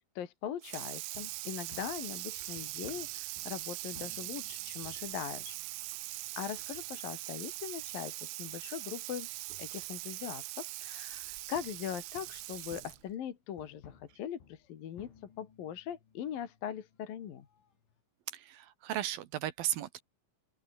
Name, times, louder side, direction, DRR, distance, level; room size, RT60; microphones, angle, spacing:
voice 1, 0.1-5.6 6.4-9.3 9.6-17.5, left 9 dB, 55° left, 3.3 m, -41 dB
Water tap faucet / Sink (filling or washing), 0.6-13.1, right 21 dB, 90° right, 3.3 m, -42 dB
sound 1, 1.1-9.1 9.4-9.5 10.3-10.4 11.5-18.0, left 7 dB, 75° left, 7.1 m, -60 dB
voice 2, 18.5-20.0, right 12 dB, 70° right, 2.4 m, -35 dB
open air
omnidirectional pair, 5.6 m